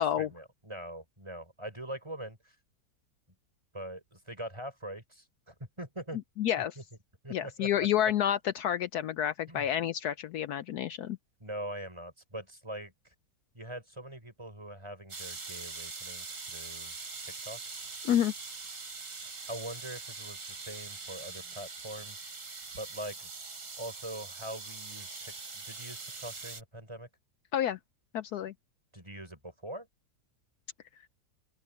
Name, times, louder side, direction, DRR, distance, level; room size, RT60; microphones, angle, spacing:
voice 1, 0.2-2.6 3.7-6.2 6.8-6.9 7.2-7.9 9.5-9.7 11.4-12.9 13.5-16.9 17.2-17.6 19.5-22.3 22.8-23.3 23.8-27.1 28.9-29.9, right 1 dB, 15° right, 5.5 m, -43 dB
voice 2, 6.4-6.7 7.3-11.2 18.0-18.3 27.5-27.8 28.1-28.5, left 10 dB, 70° left, 1.1 m, -29 dB
sound 1, 15.1-26.6, right 4 dB, 80° right, 3.9 m, -43 dB
open air
omnidirectional pair, 1.8 m